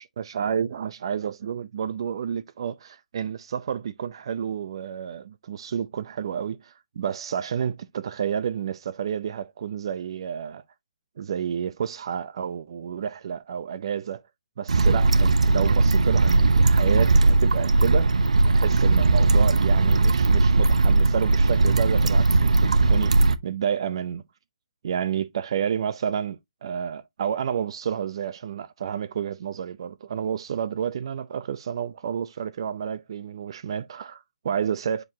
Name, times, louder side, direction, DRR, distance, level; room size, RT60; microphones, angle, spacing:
voice 1, 0.0-10.6 11.2-14.2 14.6-18.1 18.5-23.1 23.4-24.2 24.8-35.0, right 8 dB, 45° right, 0.5 m, -30 dB
sound 1, 14.7-23.4, right 3 dB, 85° right, 0.8 m, -19 dB
7.3 x 4.6 x 2.8 m
hypercardioid pair, 165°, 4 cm